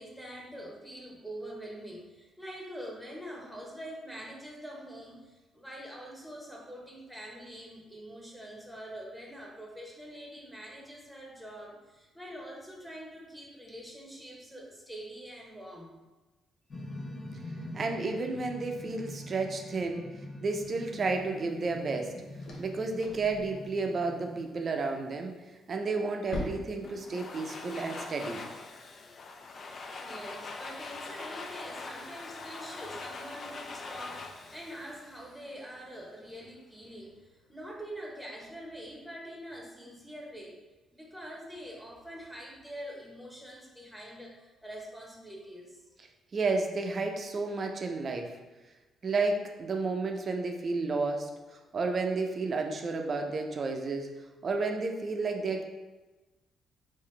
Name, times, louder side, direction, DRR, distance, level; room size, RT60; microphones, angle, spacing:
voice 1, 0.0-15.9 27.1-27.2 30.0-37.2 37.5-40.6 40.9-45.8, equal, ahead, -3 dB, 1.0 m, -45 dB
sound 1, 16.7-25.1, left 1 dB, 30° left, 0.9 m, -44 dB
voice 2, 17.7-20.0 20.4-22.1 22.6-25.3 25.7-28.4 46.3-48.3 49.0-54.1 54.4-55.6, right 3 dB, 45° right, 3 dB, 0.5 m, -31 dB
sound 2, 20.8-27.9, left 1 dB, 70° left, 0.7 m, -46 dB
Domestic sounds home sounds, 26.8-35.8, left 3 dB, 50° left, 0.4 m, -43 dB
3.9 x 2.5 x 3.2 m, 1.2 s
cardioid pair, 90°, 0 cm